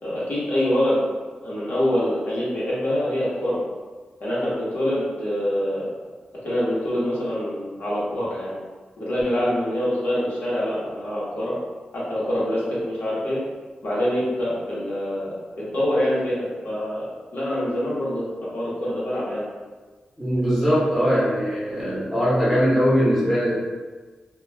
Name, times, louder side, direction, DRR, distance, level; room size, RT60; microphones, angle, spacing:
voice 1, 0.0-1.1 1.4-3.6 4.2-5.9 6.4-8.5 9.0-11.6 11.9-13.4 13.8-17.0 17.3-19.5, equal, 70° left, -8 dB, 1.0 m, -25 dB
voice 2, 20.2-23.6, equal, ahead, -8 dB, 1.0 m, -21 dB
2.3 x 2.3 x 3.3 m, 1.4 s
wide cardioid pair, 95°, 3 cm